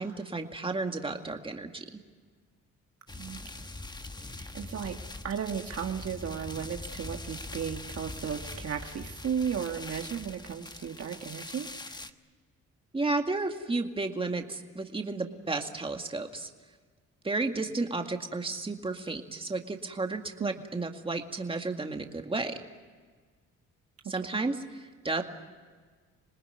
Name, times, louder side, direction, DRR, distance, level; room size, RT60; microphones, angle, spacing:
voice 1, 0.0-2.0 12.9-16.5 17.2-22.6 24.1-25.2, right 3 dB, 20° right, 4 dB, 2.1 m, -32 dB
sound 1, 3.1-12.1, left 2 dB, 15° left, 1.2 m, -42 dB
voice 2, 4.4-5.0 5.2-12.0 20.4-20.5, right 7 dB, 50° right, 4 dB, 1.7 m, -35 dB
27.0 x 19.5 x 9.4 m, 1.5 s
cardioid pair, 90°, 30 cm